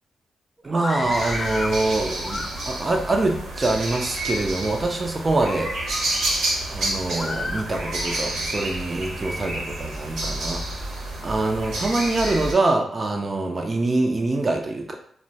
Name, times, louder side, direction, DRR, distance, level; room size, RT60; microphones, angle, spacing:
voice 1, 0.6-5.7 6.7-10.9 11.2-15.0, right 2 dB, 40° right, 2 dB, 0.5 m, -24 dB
Screaming, 0.7-1.8 2.2-2.9 3.6-4.2 4.7-4.9 5.4-6.4 7.2-8.2, left 3 dB, 40° left, 0.3 m, -33 dB
sound 1, 1.1-12.5, right 1 dB, 75° right, 0.9 m, -29 dB
4.3 x 2.1 x 2.7 m, 0.64 s
hypercardioid pair, 40°, 0 cm